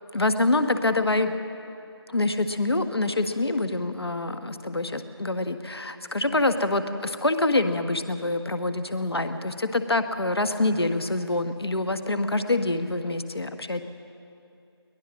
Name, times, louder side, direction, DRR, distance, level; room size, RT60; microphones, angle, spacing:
voice 1, 0.1-1.3 2.1-13.8, left 2 dB, 65° left, 9 dB, 1.4 m, -26 dB
22.5 x 19.0 x 6.2 m, 2.6 s
figure-of-eight pair, 165°, 14 cm